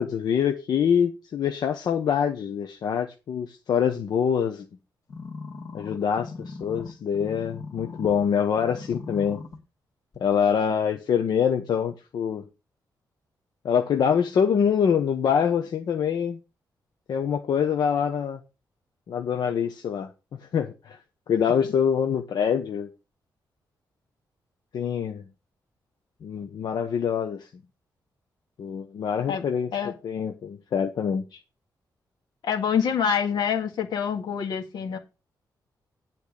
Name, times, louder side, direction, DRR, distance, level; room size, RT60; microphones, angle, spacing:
voice 1, 0.0-4.6 5.7-9.4 10.2-12.4 13.6-16.4 17.1-18.4 19.1-20.1 20.5-21.0 21.3-22.9 24.7-25.2 26.2-27.5 28.6-29.7 30.0-31.4, left 7 dB, 70° left, 1.0 m, -25 dB
sound 1, 5.1-8.3 8.6-9.6 10.1-10.2, left 4 dB, 50° left, 1.9 m, -39 dB
voice 2, 32.4-35.0, left 7 dB, 85° left, 2.0 m, -26 dB
10.5 x 4.4 x 6.5 m
wide cardioid pair, 170°, 7 cm